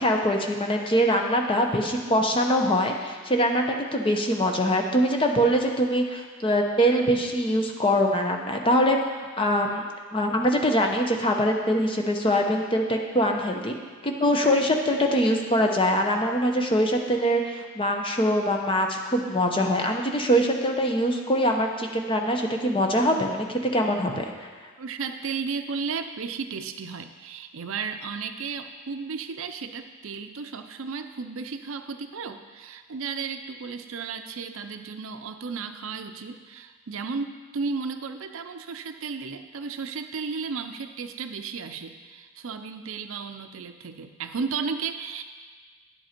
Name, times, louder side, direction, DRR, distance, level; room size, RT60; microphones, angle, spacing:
voice 1, 0.0-9.0 9.4-9.8 10.1-13.8 14.0-24.5, equal, 25° left, 2 dB, 0.8 m, -23 dB
voice 2, 24.8-45.2, right 5 dB, 65° right, 8 dB, 0.5 m, -34 dB
10.5 x 7.7 x 4.4 m, 1.5 s
head